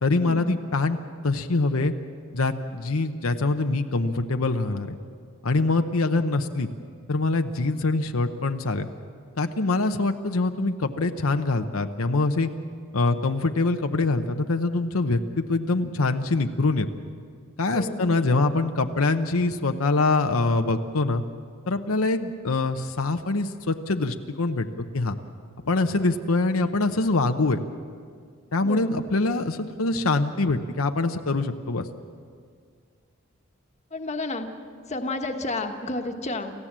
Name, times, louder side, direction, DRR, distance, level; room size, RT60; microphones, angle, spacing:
voice 1, 0.0-1.0 1.2-1.9 2.3-5.0 5.4-6.7 7.1-8.9 9.4-12.5 12.9-16.9 17.6-21.2 21.7-25.2 25.7-27.6 28.5-31.9, left 3 dB, 80° left, 6 dB, 0.9 m, -24 dB
voice 2, 17.7-18.1 28.6-28.9 33.9-34.5 34.9-36.5, left 2 dB, 30° left, 5 dB, 1.3 m, -31 dB
28.5 x 15.0 x 7.5 m, 2.1 s
head